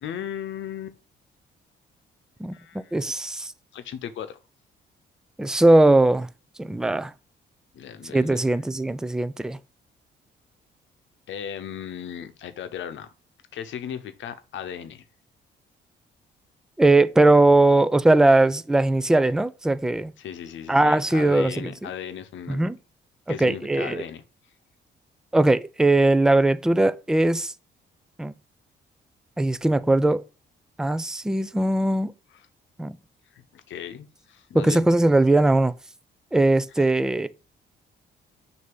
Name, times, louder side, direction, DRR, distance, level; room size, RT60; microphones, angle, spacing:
voice 1, 0.0-1.0 2.5-3.0 3.7-4.4 7.7-8.5 11.3-13.1 13.5-15.1 20.2-22.7 23.3-24.2 33.3-34.8 36.8-36.9, left 9 dB, 70° left, 0.8 m, -36 dB
voice 2, 2.4-3.5 5.4-6.3 6.6-7.1 8.0-9.6 16.8-20.1 20.7-21.9 22.5-22.8 23.3-24.0 25.3-27.5 28.2-28.3 29.4-30.2 30.8-32.1 32.8-33.0 34.5-35.7 36.3-37.3, right 2 dB, 5° right, 0.3 m, -20 dB
6.5 x 2.8 x 5.2 m
cardioid pair, 90°, 20 cm